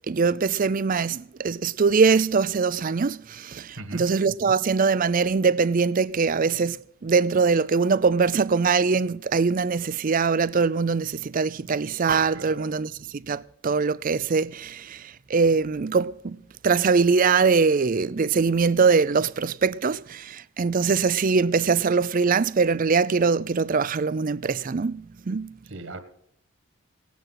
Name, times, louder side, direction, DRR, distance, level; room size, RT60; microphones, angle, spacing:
voice 1, 0.1-16.4 16.6-25.5, right 5 dB, 40° right, 0.4 m, -22 dB
voice 2, 12.4-12.7 25.6-26.0, right 2 dB, 65° right, 1.8 m, -37 dB
17.5 x 9.3 x 5.8 m
head